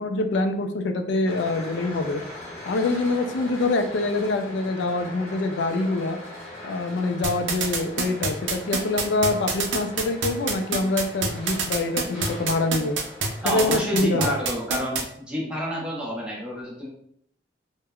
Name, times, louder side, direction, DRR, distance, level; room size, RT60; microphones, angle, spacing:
voice 1, 0.0-2.2 2.7-6.2 6.6-13.0 13.4-14.4, left 2 dB, 70° left, 6 dB, 0.3 m, -25 dB
sound 1, 1.2-13.6, left 1 dB, 15° left, 1.3 m, -41 dB
sound 2, 7.2-15.0, right 5 dB, 75° right, 0.4 m, -25 dB
voice 2, 13.4-16.9, equal, 5° right, -5 dB, 0.7 m, -29 dB
3.4 x 2.1 x 2.2 m, 0.69 s
head